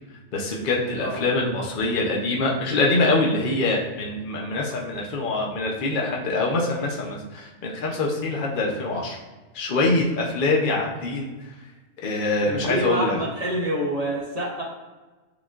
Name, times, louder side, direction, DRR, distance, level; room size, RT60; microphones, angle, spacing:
voice 1, 0.3-9.2 9.5-11.5 12.0-13.2, left 2 dB, 50° left, -1 dB, 0.7 m, -24 dB
voice 2, 12.4-14.6, equal, 40° right, -3 dB, 0.7 m, -27 dB
7.0 x 2.4 x 2.4 m, 1.2 s
omnidirectional pair, 1.4 m